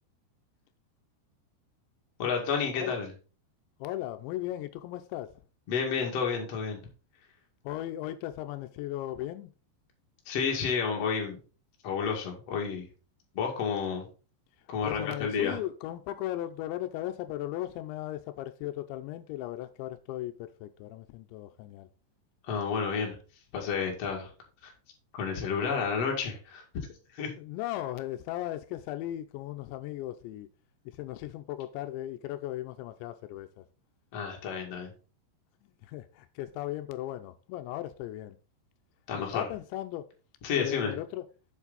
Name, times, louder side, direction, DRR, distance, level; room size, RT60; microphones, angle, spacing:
voice 1, 2.2-3.1 5.7-6.8 10.3-11.4 11.8-12.9 13.3-14.1 14.7-15.6 22.4-23.2 23.5-24.3 24.6-24.7 25.1-26.6 27.1-27.3 34.1-34.9 39.1-39.5 40.4-41.0, left 6 dB, 45° left, 2.4 m, -30 dB
voice 2, 3.8-5.3 7.6-9.5 14.8-21.9 25.7-25.8 27.4-30.5 30.9-33.7 35.8-38.4 39.2-40.1 40.6-41.2, left 14 dB, 85° left, 2.9 m, -37 dB
7.5 x 7.2 x 4.0 m
omnidirectional pair, 5.3 m